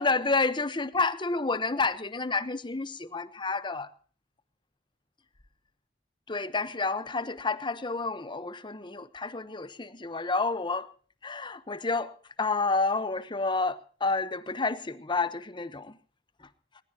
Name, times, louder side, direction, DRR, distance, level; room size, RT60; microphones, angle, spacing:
voice 1, 0.0-3.9 6.3-10.9 11.2-12.1 12.4-16.0 16.4-16.5, left 3 dB, 25° left, 1.0 m, -29 dB
20.0 x 19.5 x 2.9 m
head